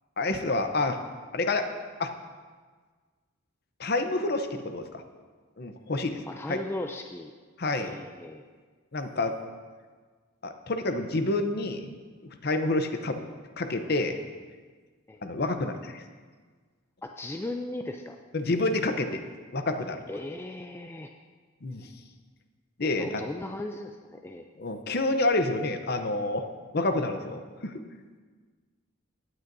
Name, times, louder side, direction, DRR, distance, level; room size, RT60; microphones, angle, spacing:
voice 1, 0.2-1.0 1.3-1.7 2.0-2.1 3.8-5.0 5.6-6.2 6.5-6.6 7.6-7.9 8.9-9.4 10.4-11.9 12.4-13.2 13.6-14.2 15.2-16.0 18.3-19.2 19.5-20.0 21.6-21.9 22.8-23.2 24.6-26.5 26.7-27.8, left 2 dB, 50° left, 7 dB, 0.7 m, -28 dB
voice 2, 6.3-7.3 7.8-8.4 15.1-15.2 17.0-18.2 20.1-21.1 23.0-24.5, left 1 dB, 10° left, 4 dB, 0.3 m, -37 dB
16.0 x 9.3 x 2.7 m, 1.5 s
head